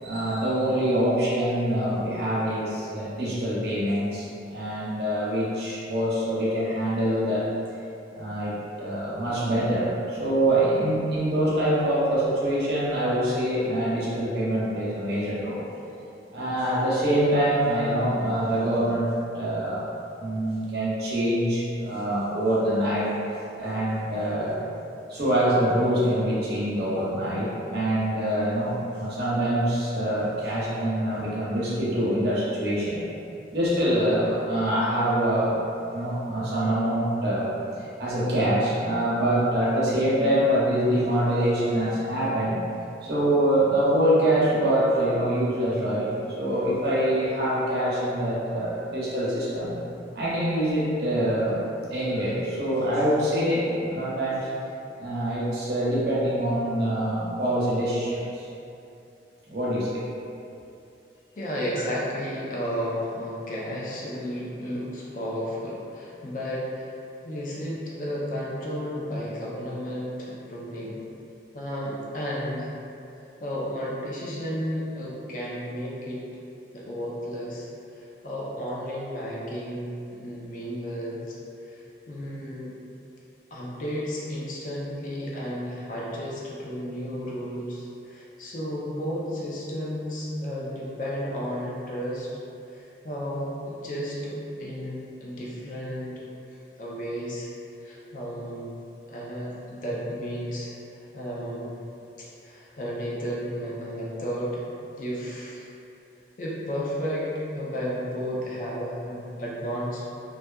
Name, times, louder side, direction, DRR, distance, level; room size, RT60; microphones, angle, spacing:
voice 1, 0.0-7.5 8.2-15.6 15.9-16.0 16.3-19.8 20.2-23.2 23.6-24.6 25.1-33.0 33.5-35.6 35.9-42.6 43.0-49.8 50.1-51.6 51.9-54.5 55.0-58.5 59.5-60.0, right 1 dB, 60° right, -8 dB, 0.7 m, -25 dB
voice 2, 61.4-67.0 67.2-70.9 71.5-72.7 73.1-76.2 76.7-77.7 77.9-81.4 81.6-82.8 83.5-92.3 92.7-96.2 96.5-97.5 97.8-98.8 99.1-101.8 102.2-104.6 105.0-105.7 106.4-110.0, equal, 45° left, -5 dB, 0.4 m, -33 dB
2.6 x 2.3 x 2.2 m, 2.6 s
head